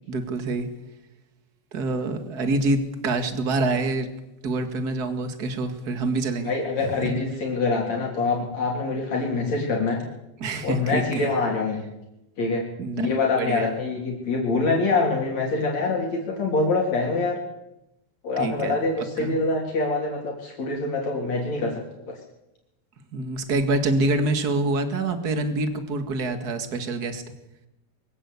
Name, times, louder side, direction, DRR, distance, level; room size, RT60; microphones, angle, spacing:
voice 1, 0.1-0.7 1.7-4.1 4.4-6.5 6.8-7.0 10.4-11.3 12.8-13.1 13.4-13.7 18.4-19.3 23.1-27.2, right 2 dB, 35° right, 8 dB, 2.2 m, -26 dB
voice 2, 6.4-10.0 10.6-11.8 12.4-12.6 12.9-17.4 18.2-21.8 22.1-22.2, left 3 dB, 60° left, -1 dB, 4.4 m, -25 dB
23.5 x 15.5 x 8.4 m, 0.91 s
omnidirectional pair, 3.6 m